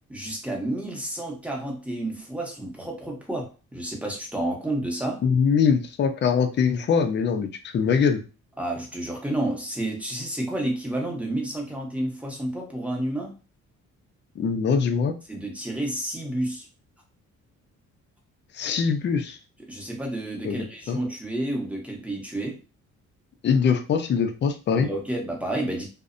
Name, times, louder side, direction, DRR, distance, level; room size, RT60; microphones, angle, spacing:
voice 1, 0.1-5.2 8.6-13.4 15.3-16.7 19.7-22.6 24.7-25.9, right 1 dB, 5° right, 0 dB, 0.8 m, -30 dB
voice 2, 5.2-8.2 14.4-15.1 18.5-19.4 20.4-21.0 23.4-24.9, left 6 dB, 40° left, 7 dB, 0.4 m, -23 dB
2.6 x 2.0 x 2.5 m, 0.32 s
cardioid pair, 90°, 30 cm